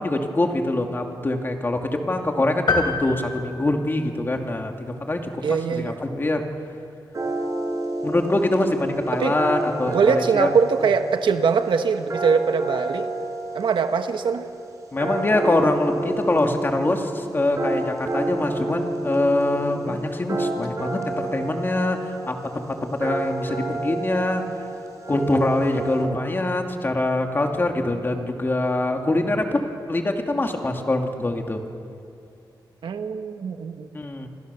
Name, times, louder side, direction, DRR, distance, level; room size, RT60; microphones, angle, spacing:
voice 1, 0.0-6.4 8.0-10.5 14.9-24.4 25.1-31.6 33.9-34.3, left 2 dB, 25° left, 3 dB, 2.5 m, -24 dB
sound 1, 2.7-4.5, left 3 dB, 65° left, 3.2 m, -27 dB
voice 2, 5.4-5.9 9.1-9.3 9.9-13.1 13.5-14.4 19.9-20.0 20.8-20.9 32.8-33.9, right 5 dB, 80° right, 7 dB, 1.3 m, -22 dB
sound 2, 7.1-26.0, right 2 dB, 40° right, 5.6 m, -30 dB
29.0 x 25.0 x 7.0 m, 2.6 s
wide cardioid pair, 120°, 8 cm